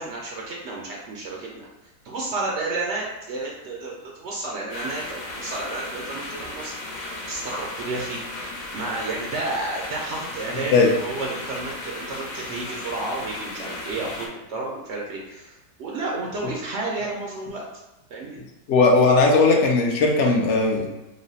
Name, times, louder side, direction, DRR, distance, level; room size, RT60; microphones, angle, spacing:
voice 1, 0.0-1.7 2.0-8.2 8.5-17.6 18.1-18.4, right 2 dB, 85° right, -2 dB, 0.6 m, -31 dB
sound 1, 4.7-14.3, left 2 dB, 85° left, 1.4 m, -35 dB
voice 2, 18.7-20.9, left 3 dB, 70° left, 0 dB, 0.7 m, -18 dB
3.1 x 2.0 x 3.9 m, 1.0 s
omnidirectional pair, 1.7 m